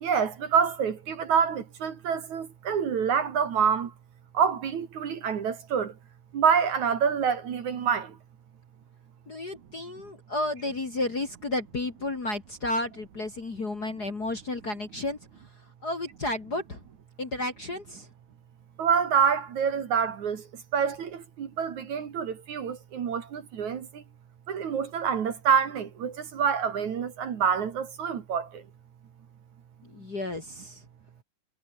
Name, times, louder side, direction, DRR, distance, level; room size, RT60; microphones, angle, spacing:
voice 1, 0.0-3.9 4.3-5.9 6.3-8.1 18.8-20.4 20.7-23.9 24.5-28.6, right 7 dB, 55° right, 3.2 m, -26 dB
voice 2, 9.3-15.2 15.8-16.8 17.2-18.1 29.8-30.8, left 2 dB, 30° left, 2.3 m, -32 dB
omnidirectional pair, 4.3 m